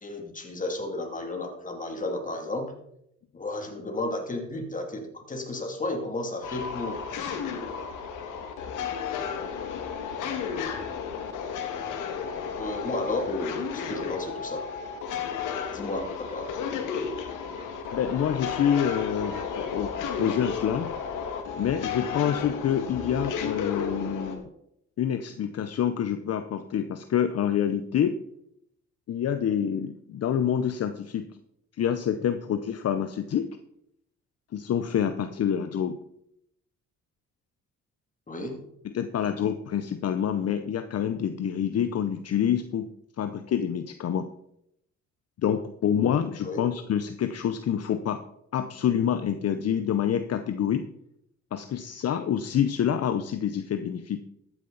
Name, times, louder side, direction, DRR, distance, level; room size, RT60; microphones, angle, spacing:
voice 1, 0.0-2.7 3.3-7.0 12.6-14.6 15.7-16.5 38.3-38.6 46.4-46.7, left 2 dB, 25° left, 3 dB, 2.6 m, -33 dB
sound 1, 6.4-24.4, left 6 dB, 85° left, 2.0 m, -33 dB
voice 2, 17.9-20.9 21.6-24.5 25.0-28.2 29.1-31.3 31.8-33.6 34.5-36.0 38.8-42.9 43.2-44.3 45.4-48.2 48.5-50.9 51.5-54.2, left 9 dB, 55° left, 9 dB, 0.8 m, -27 dB
13.0 x 9.4 x 4.0 m, 0.75 s
cardioid pair, 90°, 30 cm